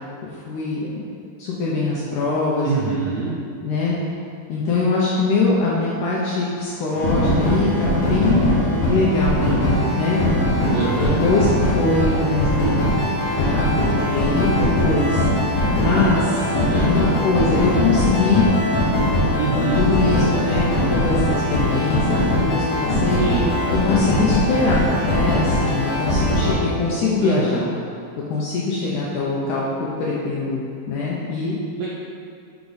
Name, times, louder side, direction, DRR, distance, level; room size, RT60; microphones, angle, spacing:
voice 1, 0.3-1.0 1.4-2.9 3.6-3.9 4.5-8.5 8.9-10.2 11.2-12.9 13.4-13.7 14.0-15.3 15.8-16.5 16.7-18.5 19.5-23.2 23.9-27.7 28.3-31.6, left 3 dB, 80° left, -6 dB, 1.9 m, -22 dB
voice 2, 2.6-3.3 10.7-11.1 16.4-16.9 19.4-19.9 23.2-23.5 27.2-27.6 31.8-31.9, right 5 dB, 80° right, -6 dB, 1.8 m, -25 dB
sound 1, 6.9-26.5, left 1 dB, 60° left, 2.0 m, -20 dB
5.8 x 5.0 x 4.0 m, 2.4 s
omnidirectional pair, 4.4 m